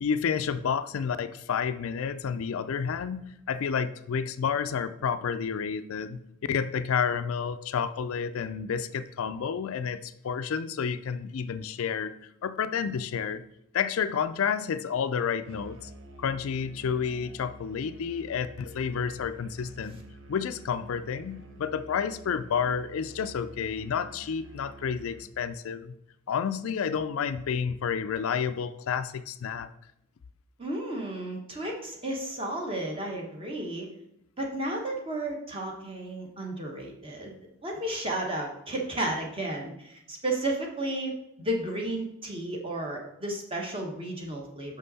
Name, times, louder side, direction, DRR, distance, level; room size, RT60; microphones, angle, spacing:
voice 1, 0.0-6.2 6.5-12.1 12.4-13.4 13.7-15.9 16.2-20.0 20.3-26.0 26.3-29.7, left 7 dB, 75° left, 12 dB, 0.4 m, -30 dB
Musical instrument, 15.5-25.4, right 2 dB, 65° right, 0.9 m, -48 dB
voice 2, 30.6-33.9 34.4-41.1 41.4-44.8, right 1 dB, 25° right, 0 dB, 1.2 m, -33 dB
6.1 x 5.5 x 4.1 m, 0.81 s
head